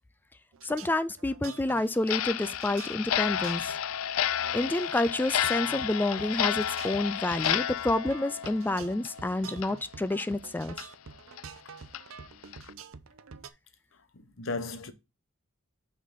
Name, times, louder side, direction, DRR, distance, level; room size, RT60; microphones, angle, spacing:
sound 1, 0.5-13.5, right 6 dB, 80° right, 0.6 m, -47 dB
voice 1, 0.6-3.8 4.5-10.8, left 2 dB, 10° left, 0.3 m, -29 dB
Clock, 2.0-9.3 9.6-9.7 10.2-10.3 10.8-10.9 11.4-11.5 11.9-12.0 12.5-12.7, left 10 dB, 90° left, 0.4 m, -31 dB
voice 2, 14.1-14.9, left 3 dB, 70° left, 1.0 m, -36 dB
6.1 x 4.2 x 5.4 m
head